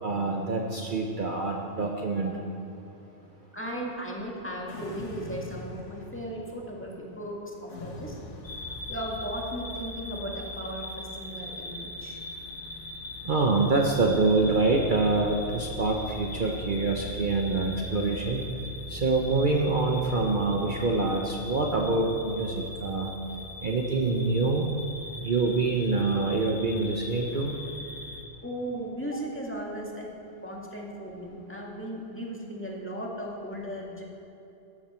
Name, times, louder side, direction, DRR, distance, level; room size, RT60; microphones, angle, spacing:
voice 1, 0.0-2.3 13.2-18.4 18.9-23.1 23.6-24.7 25.2-27.5, right 3 dB, 45° right, 1 dB, 1.0 m, -26 dB
voice 2, 3.5-8.2 8.9-12.2 28.4-30.1 30.4-34.0, right 1 dB, 10° left, -3 dB, 2.0 m, -36 dB
sound 1, 4.7-6.6 7.7-9.5, left 2 dB, 85° left, 1.6 m, -43 dB
sound 2, 8.4-28.2, left 2 dB, 55° left, 1.4 m, -40 dB
13.5 x 13.0 x 4.4 m, 2.9 s
omnidirectional pair, 1.2 m